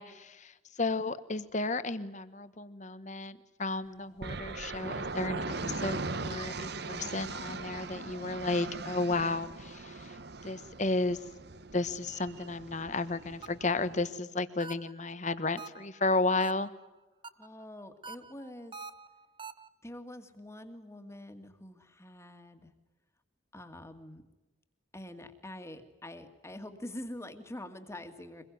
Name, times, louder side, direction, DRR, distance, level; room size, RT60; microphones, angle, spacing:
voice 1, 0.0-10.2 10.4-11.2 11.7-16.7, left 3 dB, 35° left, 12 dB, 1.3 m, -33 dB
sound 1, 4.2-14.1, right 3 dB, 55° right, 1.0 m, -40 dB
sound 2, 13.4-13.8 14.6-15.1 15.6-16.0 16.4-16.9 17.2-17.6 18.0-19.7, right 4 dB, 25° right, 1.0 m, -46 dB
voice 2, 17.4-18.8 19.8-22.7 23.5-24.2 24.9-28.4, left 1 dB, 15° left, 7 dB, 2.1 m, -45 dB
25.0 x 21.5 x 9.5 m, 1.1 s
head